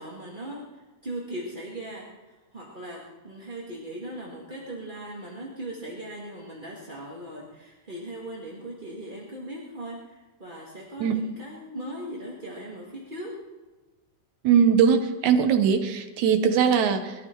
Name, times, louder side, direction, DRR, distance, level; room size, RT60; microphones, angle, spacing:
voice 1, 0.0-13.4, right 1 dB, 25° right, -4 dB, 1.2 m, -39 dB
voice 2, 14.4-17.1, right 7 dB, 65° right, 7 dB, 1.9 m, -21 dB
21.0 x 13.5 x 4.6 m, 1.2 s
omnidirectional pair, 4.3 m